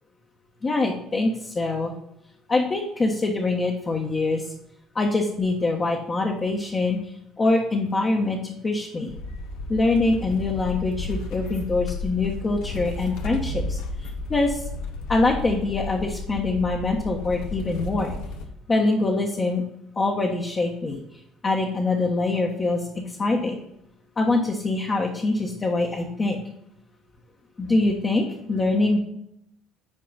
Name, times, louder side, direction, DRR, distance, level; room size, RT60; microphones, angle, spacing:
voice 1, 0.6-1.9 2.5-4.4 4.9-7.0 7.4-9.1 9.7-14.6 15.1-18.1 18.7-19.6 20.0-21.0 21.4-23.6 24.2-26.4 27.6-29.0, left 2 dB, 30° left, -1 dB, 1.2 m, -24 dB
sound 1, 9.1-18.5, left 3 dB, 80° left, 1.1 m, -33 dB
9.1 x 4.7 x 4.0 m, 0.77 s
supercardioid pair, 95°, 0 cm